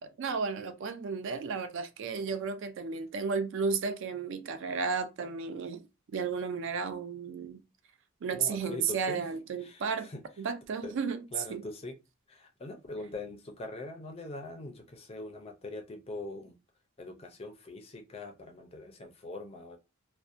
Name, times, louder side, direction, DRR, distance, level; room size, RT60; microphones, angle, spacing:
voice 1, 0.0-5.8 6.1-7.6 8.2-10.1 10.4-11.6, right 5 dB, 60° right, 0.4 m, -33 dB
voice 2, 8.3-9.3 9.6-10.2 10.8-10.9 11.3-12.0 12.3-16.6 17.0-19.8, left 2 dB, 25° left, 0.4 m, -42 dB
2.5 x 2.0 x 2.4 m
head